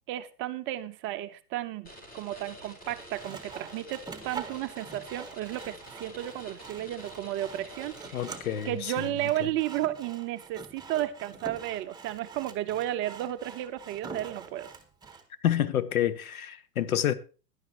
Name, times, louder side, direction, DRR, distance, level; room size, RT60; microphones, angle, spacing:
voice 1, 0.1-8.2 8.6-14.7, right 13 dB, 25° right, 0.8 m, -33 dB
sound 1, 1.8-9.1, equal, 20° left, 4.7 m, -48 dB
Sawing, 2.8-15.3, right 5 dB, 10° right, 1.8 m, -45 dB
voice 2, 8.1-8.9 15.4-17.1, left 10 dB, 60° left, 1.5 m, -28 dB
16.5 x 11.5 x 2.9 m
figure-of-eight pair, 105°, 48 cm